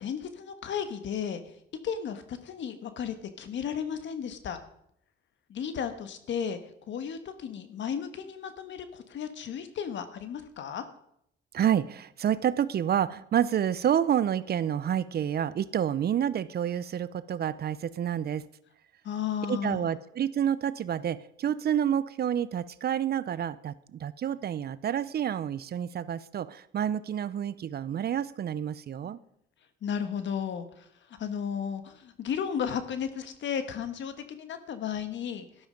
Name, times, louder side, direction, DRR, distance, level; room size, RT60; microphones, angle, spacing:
voice 1, 0.0-1.4 1.8-4.6 5.5-6.6 6.9-10.9 19.0-19.9 29.0-29.2 29.8-30.9 31.2-35.5, left 7 dB, 70° left, 9 dB, 1.5 m, -34 dB
voice 2, 11.5-18.4 19.5-29.2, right 9 dB, 50° right, 17 dB, 0.6 m, -29 dB
12.5 x 12.0 x 5.2 m, 0.73 s
cardioid pair, 90°, 20 cm